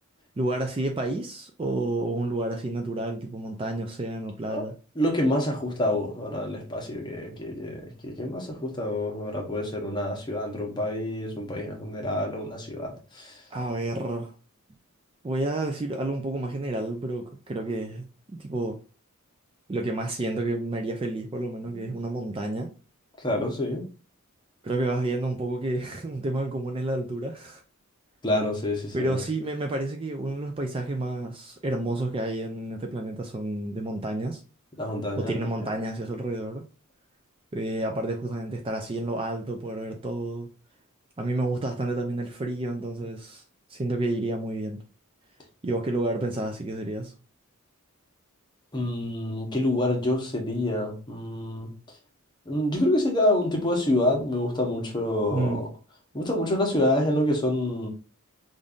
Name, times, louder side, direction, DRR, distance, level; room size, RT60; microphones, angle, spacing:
voice 1, 0.4-4.7 13.5-14.3 15.2-18.8 19.7-22.7 24.6-27.6 28.9-34.4 35.2-36.6 37.5-40.5 41.2-43.4 43.7-44.8 45.6-47.1 55.3-55.6, right 2 dB, 25° right, 0.4 m, -30 dB
voice 2, 5.0-13.4 21.6-21.9 23.2-23.8 28.2-29.2 34.8-35.7 48.7-51.7 52.5-55.7 56.1-57.9, left 1 dB, 20° left, 0.9 m, -27 dB
5.2 x 2.5 x 2.4 m
head